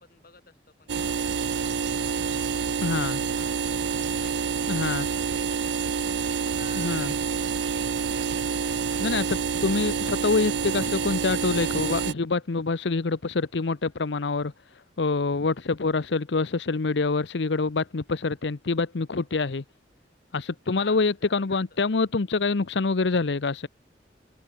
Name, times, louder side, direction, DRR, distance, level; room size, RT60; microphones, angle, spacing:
voice 1, 0.0-4.5 5.0-7.0 7.9-9.2 20.7-21.6, left 4 dB, 55° left, 6.3 m, -51 dB
sound 1, 0.9-12.1, right 6 dB, 85° right, 0.6 m, -28 dB
voice 2, 2.8-3.3 4.7-5.1 6.7-7.1 9.0-19.6 20.3-23.7, left 3 dB, 75° left, 0.7 m, -26 dB
open air
head